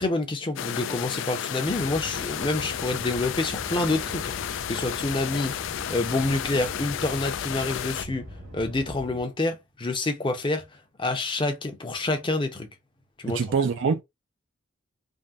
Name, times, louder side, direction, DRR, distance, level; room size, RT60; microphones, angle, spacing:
voice 1, 0.0-8.3 8.5-10.7 11.0-12.7 13.2-13.4, left 2 dB, 25° left, 0.6 m, -28 dB
sound 1, 0.6-8.1, left 9 dB, 65° left, 0.3 m, -32 dB
sound 2, 1.6-9.2, equal, 85° right, 1.7 m, -42 dB
voice 2, 13.3-14.0, right 5 dB, 65° right, 0.4 m, -24 dB
3.5 x 2.1 x 2.5 m
head